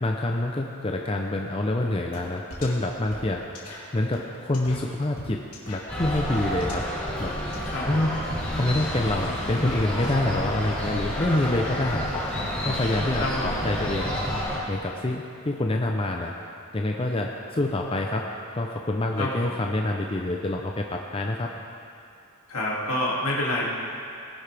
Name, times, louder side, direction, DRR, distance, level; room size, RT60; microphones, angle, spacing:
voice 1, 0.0-3.4 3.9-5.4 5.7-6.9 7.2-7.3 7.9-8.1 8.5-12.2 12.6-14.1 14.7-16.3 16.7-21.5, left 1 dB, 25° left, 1 dB, 0.5 m, -27 dB
sound 1, 2.1-2.2 2.5-10.1, left 1 dB, 90° left, 2.3 m, -42 dB
sound 2, 5.9-14.6, equal, 5° left, 3.2 m, -29 dB
voice 2, 7.7-8.1 13.1-13.5 19.2-19.5 22.5-23.7, left 1 dB, 75° left, -5 dB, 2.5 m, -28 dB
19.0 x 11.0 x 3.4 m, 2.5 s
head